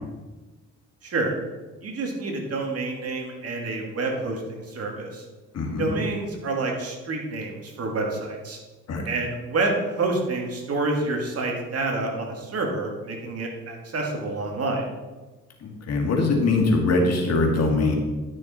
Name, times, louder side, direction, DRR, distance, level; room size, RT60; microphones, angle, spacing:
voice 1, 1.0-1.4 1.8-5.2 5.8-8.6 9.0-14.9, right 2 dB, 55° right, 1 dB, 2.4 m, -28 dB
voice 2, 5.5-5.9 8.9-9.0 15.6-18.0, left 3 dB, 55° left, 0 dB, 2.3 m, -22 dB
11.5 x 6.5 x 4.4 m, 1.2 s
cardioid pair, 90°, 30 cm